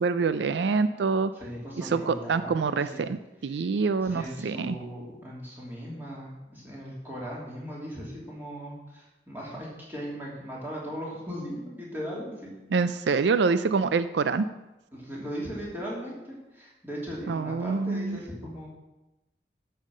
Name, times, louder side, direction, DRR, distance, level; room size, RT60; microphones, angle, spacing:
voice 1, 0.0-1.3 1.9-3.2 3.4-4.8 12.7-14.5 17.3-18.2, right 4 dB, 75° right, 12 dB, 0.4 m, -26 dB
voice 2, 1.3-3.0 3.5-3.6 4.0-12.5 14.9-18.7, equal, 10° right, -5 dB, 3.1 m, -38 dB
12.5 x 5.6 x 6.5 m, 0.99 s
head